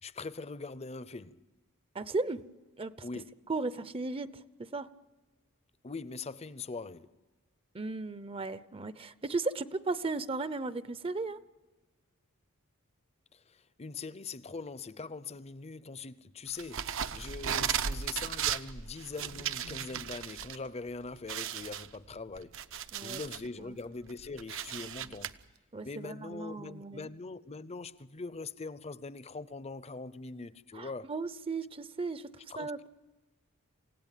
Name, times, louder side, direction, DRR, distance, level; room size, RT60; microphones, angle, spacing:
voice 1, 0.0-1.4 3.0-3.3 5.8-7.1 13.3-22.6 23.0-25.4 25.8-31.1 32.5-32.9, left 4 dB, 30° left, 0.7 m, -42 dB
voice 2, 1.9-2.4 2.8-2.9 3.5-4.9 7.7-11.4 22.9-23.2 23.6-23.8 25.0-25.2 25.7-27.1 30.7-32.3 32.6-32.8, right 3 dB, 25° right, 0.7 m, -36 dB
sound 1, 16.6-20.6 20.9-21.0 21.3-23.5 23.9-25.3, right 8 dB, 60° right, 0.8 m, -36 dB
27.5 x 16.5 x 9.1 m
head